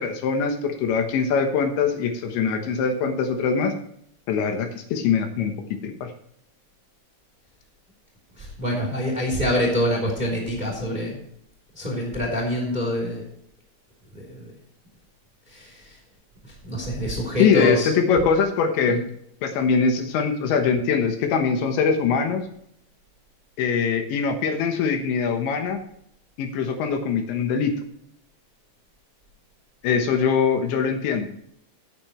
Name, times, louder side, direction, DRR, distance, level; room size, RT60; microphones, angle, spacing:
voice 1, 0.0-3.7 4.3-5.5 5.8-6.1 17.4-19.0 19.4-22.5 23.6-25.8 26.4-27.8 29.8-31.3, left 6 dB, 75° left, 5 dB, 3.4 m, -22 dB
voice 2, 8.4-11.2 11.8-13.2 14.1-14.5 15.5-15.7 16.6-17.9 18.9-19.0, equal, 10° right, 0 dB, 2.6 m, -25 dB
15.0 x 9.1 x 3.2 m, 0.72 s
omnidirectional pair, 5.4 m